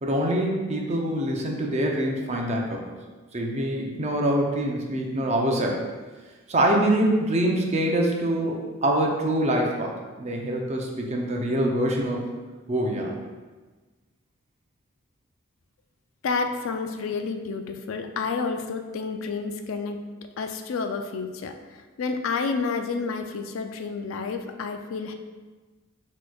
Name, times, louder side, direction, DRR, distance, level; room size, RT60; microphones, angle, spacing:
voice 1, 0.0-2.9 3.3-5.8 6.5-12.3 12.7-13.2, right 1 dB, 30° right, 0 dB, 0.5 m, -25 dB
voice 2, 16.2-20.0 20.4-21.5 22.0-25.1, left 4 dB, 70° left, 6 dB, 0.3 m, -29 dB
6.2 x 3.0 x 2.3 m, 1.3 s
head